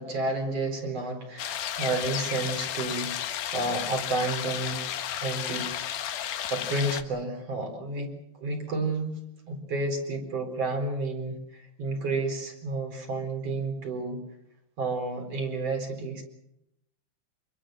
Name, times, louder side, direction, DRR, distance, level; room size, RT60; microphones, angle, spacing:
voice 1, 0.0-3.1 3.5-4.8 5.2-5.7 6.3-9.2 9.5-14.2 14.8-16.2, right 2 dB, 35° right, 5 dB, 4.8 m, -31 dB
sound 1, 1.4-7.0, left 10 dB, 75° left, 1.9 m, -33 dB
26.5 x 22.5 x 6.4 m, 0.83 s
omnidirectional pair, 5.4 m